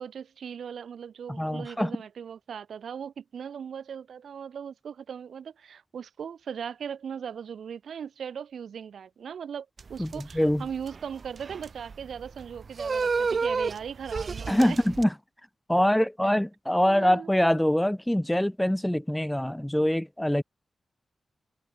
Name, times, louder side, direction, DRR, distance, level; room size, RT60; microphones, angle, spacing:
voice 1, 0.0-14.8 16.8-17.3, right 7 dB, 80° right, 3.2 m, -39 dB
voice 2, 1.3-1.9 10.0-10.6 14.5-15.1 15.7-20.4, left 1 dB, 5° left, 1.1 m, -24 dB
sound 1, 9.8-15.0, right 5 dB, 45° right, 2.3 m, -31 dB
wide cardioid pair, 120°, 0 cm